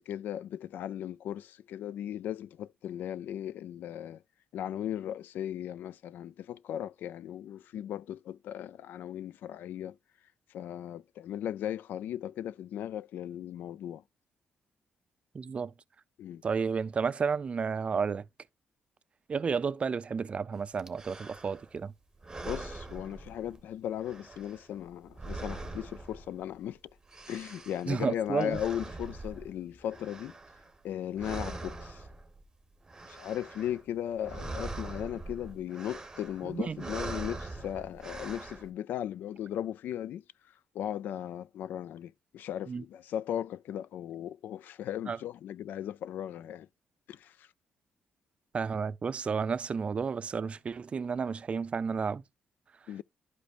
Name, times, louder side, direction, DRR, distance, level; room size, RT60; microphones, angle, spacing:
voice 1, 0.1-4.2 4.5-10.0 10.5-14.0 16.2-16.4 22.4-26.8 27.3-30.3 30.8-32.0 33.1-40.2 40.7-46.7 47.1-47.5 52.9-53.0, left 10 dB, 85° left, 0.3 m, -37 dB
voice 2, 15.3-15.7 16.4-18.2 19.3-21.9 27.9-28.6 36.4-36.9 42.7-42.8 45.1-45.2 48.5-52.2, right 5 dB, 40° right, 0.5 m, -32 dB
sound 1, 20.8-21.8 22.2-23.7 24.0-26.7 26.9-30.9 31.2-32.4 32.7-33.8 34.1-38.7, right 2 dB, 15° right, 1.1 m, -43 dB
11.5 x 5.0 x 2.4 m
cardioid pair, 105°, 3 cm